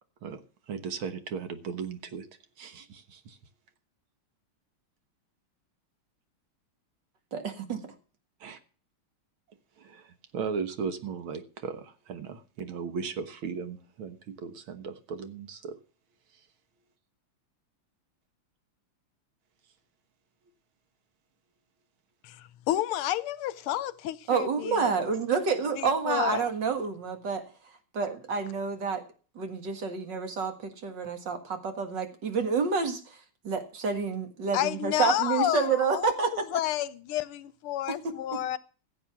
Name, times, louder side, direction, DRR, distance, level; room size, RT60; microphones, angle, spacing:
voice 1, 0.7-2.3 2.6-3.4 8.4-8.6 9.8-10.1 10.3-15.7, right 6 dB, 70° right, 2.1 m, -36 dB
voice 2, 7.3-7.8 24.3-27.5 27.9-29.0 29.4-36.3 38.0-38.2, right 5 dB, 55° right, 2.4 m, -29 dB
voice 3, 22.2-25.0 25.8-26.4 34.5-38.6, left 13 dB, 85° left, 1.7 m, -30 dB
15.5 x 7.8 x 6.0 m
omnidirectional pair, 2.4 m